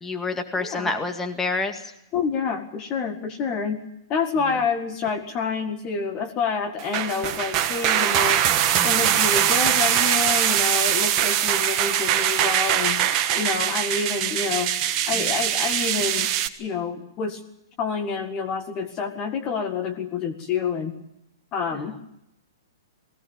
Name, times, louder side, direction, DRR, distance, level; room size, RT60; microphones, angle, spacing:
voice 1, 0.0-1.8 8.7-9.0, left 3 dB, 10° left, 5 dB, 2.1 m, -28 dB
voice 2, 0.6-0.9 2.1-3.8 4.1-8.4 8.8-13.0 13.3-14.7 15.1-16.3 16.6-17.4 17.8-20.9 21.5-22.0, left 5 dB, 30° left, 6 dB, 1.9 m, -28 dB
sound 1, 6.8-16.5, right 10 dB, 35° right, 1.4 m, -22 dB
20.0 x 17.0 x 8.9 m, 0.83 s
hypercardioid pair, 125°, 2 cm